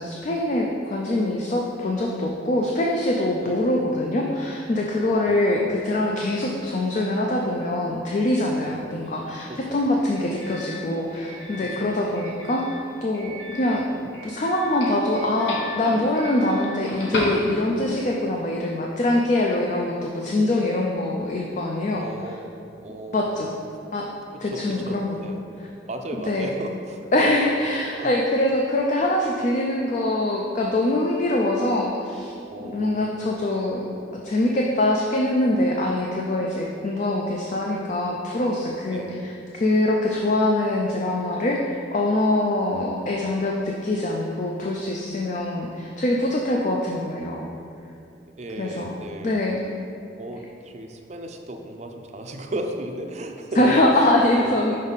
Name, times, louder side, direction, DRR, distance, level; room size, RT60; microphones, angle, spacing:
voice 1, 0.0-12.6 13.0-22.0 23.1-23.5 23.9-24.1 24.4-25.2 26.2-26.5 27.1-32.3 32.6-33.8 34.2-47.5 48.6-49.7 53.6-54.8, left 1 dB, 40° left, -1 dB, 0.4 m, -23 dB
voice 2, 5.0-5.4 8.6-8.8 9.5-9.9 11.6-11.9 21.9-23.3 24.4-25.4 25.9-27.3 27.9-28.1 32.5-33.3 38.9-39.1 48.4-49.4 50.2-53.8 54.3-54.6, right 1 dB, 40° right, 4 dB, 0.5 m, -36 dB
Doorbell, 8.9-18.0, left 1 dB, 75° left, 1.0 m, -36 dB
5.4 x 5.2 x 4.0 m, 2.5 s
head